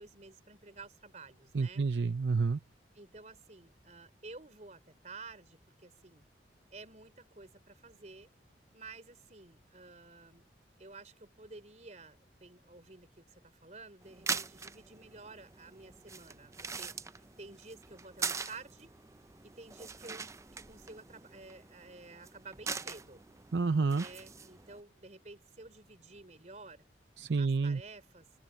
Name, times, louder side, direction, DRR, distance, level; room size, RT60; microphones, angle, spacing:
voice 1, 0.0-1.8 2.9-6.2 6.7-8.3 8.7-10.5 10.8-18.9 19.4-23.2 23.9-26.8 27.4-28.3, right 3 dB, 40° right, 3.8 m, -52 dB
voice 2, 1.5-2.6 23.5-24.0 27.2-27.8, right 4 dB, 80° right, 0.6 m, -29 dB
sound 1, 14.0-24.8, right 5 dB, 15° right, 0.4 m, -42 dB
head